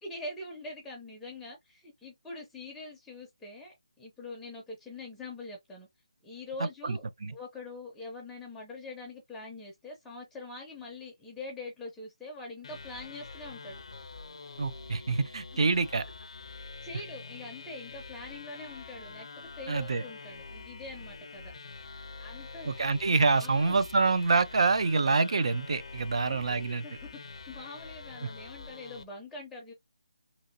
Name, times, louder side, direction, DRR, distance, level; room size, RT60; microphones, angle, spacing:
voice 1, 0.0-5.9 6.2-13.8 16.6-21.5 22.2-22.7 23.1-23.8 26.2-27.2 27.5-29.7, left 2 dB, 5° left, 0.5 m, -44 dB
voice 2, 6.8-7.3 14.6-16.0 19.7-20.0 22.7-26.8 28.2-28.3, right 4 dB, 60° right, 0.4 m, -26 dB
sound 1, 12.6-29.0, left 4 dB, 65° left, 0.5 m, -46 dB
3.0 x 2.8 x 2.6 m
figure-of-eight pair, 160°, 3 cm